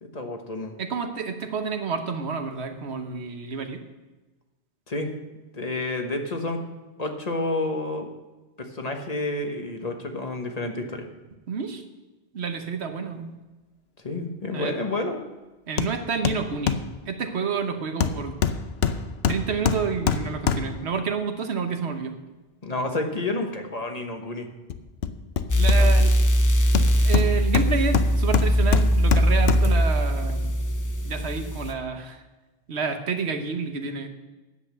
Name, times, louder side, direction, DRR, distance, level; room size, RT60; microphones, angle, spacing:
voice 1, 0.0-0.7 4.9-5.1 5.5-6.6 7.0-8.1 8.6-11.1 14.0-15.2 22.6-24.5 25.7-25.9, left 2 dB, 40° left, 4 dB, 1.3 m, -29 dB
voice 2, 0.8-3.8 11.5-11.8 12.3-13.3 14.5-14.8 15.7-16.8 17.1-18.3 19.3-22.1 25.5-26.1 27.0-30.5 31.0-32.2 32.7-34.1, right 5 dB, 85° right, 6 dB, 1.3 m, -29 dB
Hammer, 15.8-16.0 16.2-16.9 18.0-20.9 24.7-26.2 26.7-29.8 30.3-30.4, left 6 dB, 75° left, 0.9 m, -25 dB
sound 1, 25.5-31.7, equal, 20° left, 0.7 m, -21 dB
9.9 x 7.9 x 7.5 m, 1.2 s
omnidirectional pair, 1.1 m